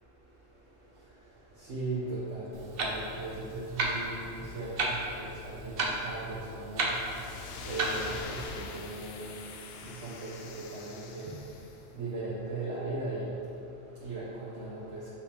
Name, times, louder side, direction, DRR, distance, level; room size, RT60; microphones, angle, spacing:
voice 1, 0.0-15.1, right 2 dB, 80° right, -7 dB, 1.2 m, -39 dB
Clock, 2.5-8.4, right 2 dB, 65° right, 0.9 m, -34 dB
sound 1, 6.9-11.8, left 4 dB, 70° left, 0.8 m, -44 dB
7.2 x 4.9 x 2.8 m, 2.7 s
omnidirectional pair, 1.1 m